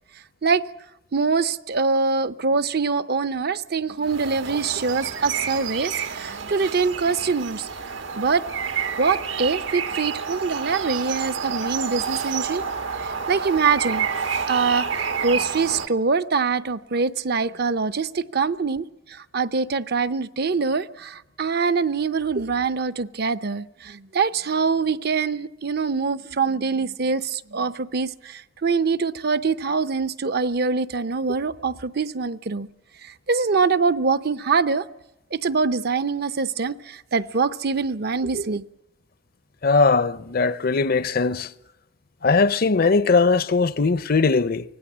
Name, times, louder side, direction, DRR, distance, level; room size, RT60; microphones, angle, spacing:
voice 1, 1.1-7.7 8.2-8.4 9.0-12.6 13.0-14.1 14.5-18.8 19.3-32.7 33.3-34.8 35.3-38.6, right 4 dB, 60° right, 0.7 m, -24 dB
sound 1, 4.0-15.9, right 6 dB, 85° right, 1.6 m, -29 dB
voice 2, 39.6-41.5 42.2-44.6, left 4 dB, 50° left, 0.7 m, -19 dB
24.5 x 18.0 x 7.4 m
head